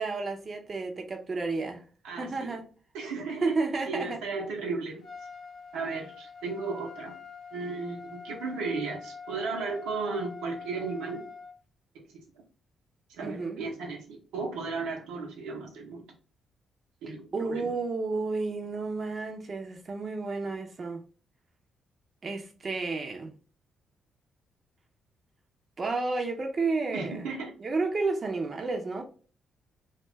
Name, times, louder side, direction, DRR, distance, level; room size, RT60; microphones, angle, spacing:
voice 1, 0.0-1.8 2.2-2.6 3.4-4.2 13.2-13.6 17.1-21.0 22.2-23.3 25.8-27.3 27.6-29.0, right 3 dB, 45° right, 0.6 m, -31 dB
voice 2, 2.0-2.5 2.9-3.6 3.9-5.0 5.7-7.1 7.5-11.2 11.9-12.2 13.2-16.0 17.0-17.7 26.9-27.5, right 4 dB, 85° right, 0.7 m, -35 dB
Trumpet, 5.0-11.5, left 5 dB, 60° left, 0.6 m, -44 dB
2.4 x 2.3 x 3.0 m
supercardioid pair, 50°, 0 cm